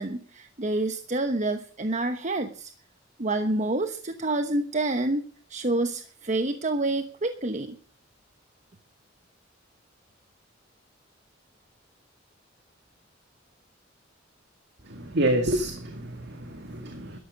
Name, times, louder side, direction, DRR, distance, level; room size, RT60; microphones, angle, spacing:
voice 1, 0.0-2.7 3.2-5.2 5.5-7.8, right 2 dB, 40° right, 8 dB, 1.0 m, -28 dB
voice 2, 15.0-17.2, right 1 dB, 60° right, 5 dB, 2.0 m, -28 dB
13.0 x 12.0 x 6.2 m, 0.41 s
head